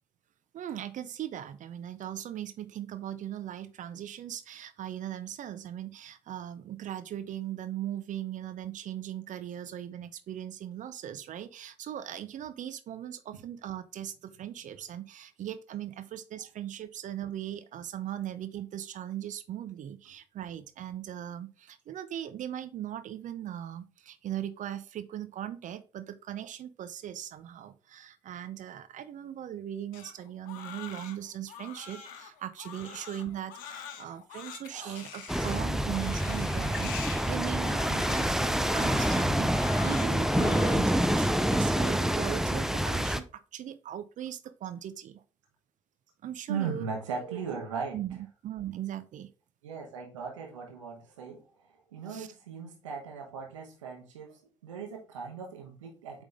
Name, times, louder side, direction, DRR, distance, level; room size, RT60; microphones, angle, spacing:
voice 1, 0.5-45.2 46.2-46.9 47.3-47.4 47.9-49.3 52.1-52.3, right 11 dB, 55° right, 12 dB, 0.6 m, -39 dB
Crying sobbing, 29.9-40.8, left 8 dB, 70° left, 0.9 m, -44 dB
voice 2, 34.7-35.0 46.5-48.0 49.6-51.4 51.9-56.2, right 6 dB, 85° right, 1 dB, 1.3 m, -38 dB
sound 1, 35.3-43.2, equal, 5° right, 0.6 m, -27 dB
8.1 x 3.5 x 3.5 m, 0.35 s
figure-of-eight pair, 40°, 16 cm